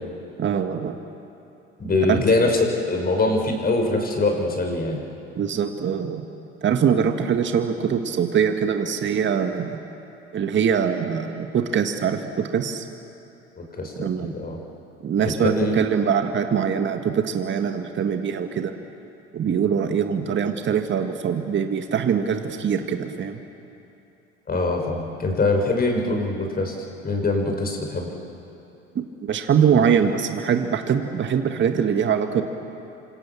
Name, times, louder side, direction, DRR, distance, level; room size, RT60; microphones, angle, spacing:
voice 1, 0.4-0.9 2.1-2.2 5.4-6.3 6.6-9.8 10.3-12.9 14.0-14.3 15.0-18.7 19.3-23.4 29.0-32.4, right 7 dB, 35° right, 6 dB, 1.8 m, -23 dB
voice 2, 1.8-2.6 2.9-5.0 13.7-14.6 15.4-15.8 24.5-26.7 27.0-28.1, left 2 dB, 30° left, 2 dB, 6.0 m, -23 dB
28.0 x 26.0 x 7.4 m, 2.8 s
hypercardioid pair, 70°, 31 cm